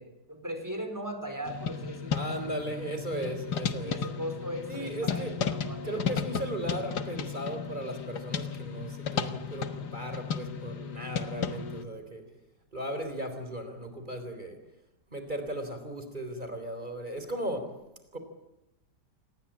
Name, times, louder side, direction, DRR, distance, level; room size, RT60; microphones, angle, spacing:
voice 1, 0.0-2.3 3.6-6.2, equal, 10° right, 6 dB, 4.4 m, -39 dB
sound 1, 1.4-11.8, left 6 dB, 70° left, 1.9 m, -34 dB
voice 2, 2.1-4.0 4.7-5.3 5.8-12.2 12.7-14.6 15.1-17.7 18.1-18.2, right 1 dB, 25° right, 7 dB, 3.9 m, -36 dB
27.5 x 19.5 x 8.7 m, 0.91 s
omnidirectional pair, 1.8 m